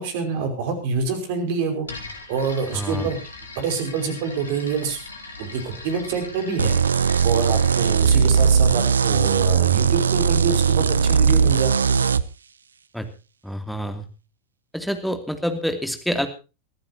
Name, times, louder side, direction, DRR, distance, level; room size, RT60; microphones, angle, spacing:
voice 1, 0.0-1.9 2.3-3.2 3.6-5.0 5.4-6.8 7.2-12.0, right 5 dB, 50° right, 8 dB, 5.2 m, -26 dB
sound 1, 1.8-8.5, left 3 dB, 75° left, 3.6 m, -40 dB
voice 2, 2.7-3.1 12.9-13.1 13.4-14.1 14.7-16.3, equal, ahead, 7 dB, 2.7 m, -27 dB
sound 2, 6.6-12.2, right 6 dB, 70° right, 0.7 m, -19 dB
23.5 x 15.0 x 2.9 m, 0.31 s
figure-of-eight pair, 90°, 0 cm